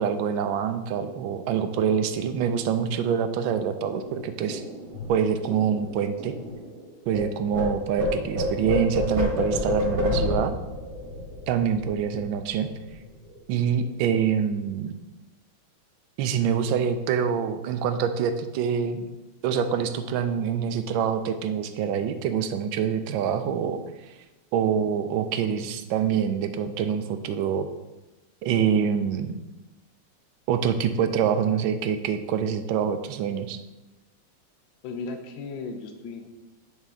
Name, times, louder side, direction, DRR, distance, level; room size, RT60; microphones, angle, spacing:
voice 1, 0.0-4.6 5.1-6.3 7.1-10.5 11.5-12.7 13.5-14.9 16.2-19.1 19.4-24.1 24.5-27.7 28.4-29.4 30.5-33.6, right 7 dB, 75° right, 8 dB, 1.3 m, -25 dB
sound 1, 3.8-7.2 7.5-12.5 12.8-13.0 13.3-13.8, left 1 dB, 45° right, 2.2 m, -30 dB
voice 2, 34.8-36.3, left 4 dB, 70° left, 6 dB, 1.4 m, -35 dB
9.0 x 4.2 x 3.6 m, 1.1 s
omnidirectional pair, 2.3 m